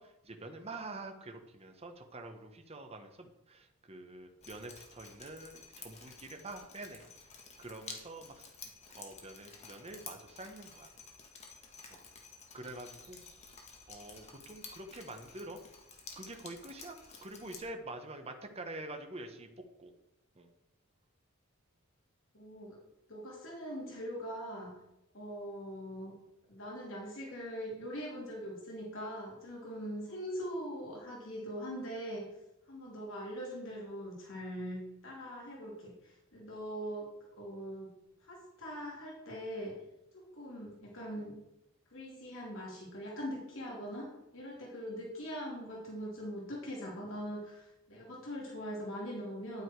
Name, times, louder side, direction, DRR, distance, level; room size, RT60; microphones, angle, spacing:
voice 1, 0.0-7.3 7.6-8.5 8.9-10.9 11.9-12.0 12.5-13.2 13.9-15.6 16.2-19.9 20.3-20.5, right 2 dB, 30° right, 5 dB, 1.0 m, -46 dB
Drip, 4.4-17.6, left 5 dB, 30° left, 1.9 m, -52 dB
voice 2, 22.3-22.8 23.1-24.7 25.1-26.1 26.5-32.3 32.7-37.1 37.4-37.9 38.2-39.8 40.1-41.3 41.9-44.1 44.3-49.6, equal, 65° left, -3 dB, 3.4 m, -42 dB
10.0 x 9.5 x 4.7 m, 0.85 s
head